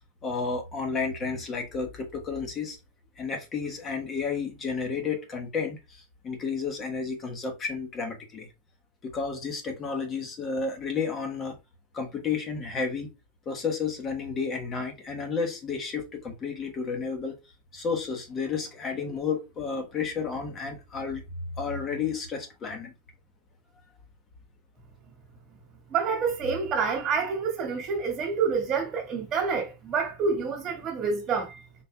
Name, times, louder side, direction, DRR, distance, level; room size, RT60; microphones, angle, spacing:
voice 1, 0.2-2.8 3.2-8.5 9.0-11.6 11.9-13.1 13.5-17.4 17.7-21.2 21.6-22.9, left 5 dB, 25° left, 1.2 m, -31 dB
voice 2, 25.9-31.6, right 5 dB, 25° right, 1.7 m, -28 dB
5.4 x 4.2 x 2.3 m
supercardioid pair, 135°, 0 cm